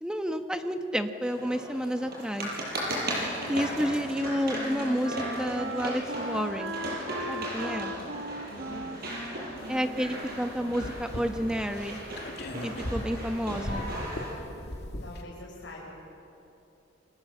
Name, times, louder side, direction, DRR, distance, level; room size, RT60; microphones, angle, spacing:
voice 1, 0.0-2.5 3.5-6.8 7.3-7.9 9.7-12.0 12.6-13.9, equal, 5° right, 6 dB, 1.2 m, -30 dB
sound 1, 1.2-14.3, right 1 dB, 50° right, 7.2 m, -37 dB
voice 2, 3.1-3.5 7.8-8.2 8.5-9.3 15.0-15.9, left 1 dB, 75° left, -3 dB, 5.4 m, -45 dB
Wind instrument woodwind instrument, 3.5-11.3, right 1 dB, 75° right, 1.5 m, -39 dB
sound 2, 9.6-15.2, equal, 55° left, 2.6 m, -39 dB
28.5 x 24.0 x 7.5 m, 2.8 s
head